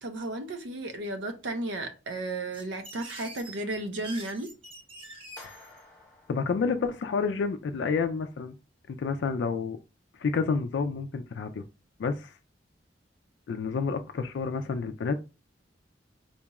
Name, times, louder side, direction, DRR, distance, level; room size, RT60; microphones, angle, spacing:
voice 1, 0.0-4.5, right 2 dB, 80° right, 0.6 m, -34 dB
sound 1, 2.5-5.8, right 2 dB, 30° right, 0.8 m, -46 dB
voice 2, 5.4-5.8 6.3-8.5 8.9-9.8 10.2-11.6 12.0-12.3 13.5-15.2, left 5 dB, 70° left, 0.3 m, -29 dB
sound 2, 5.4-7.6, left 2 dB, 10° left, 0.8 m, -53 dB
4.2 x 2.3 x 2.9 m
head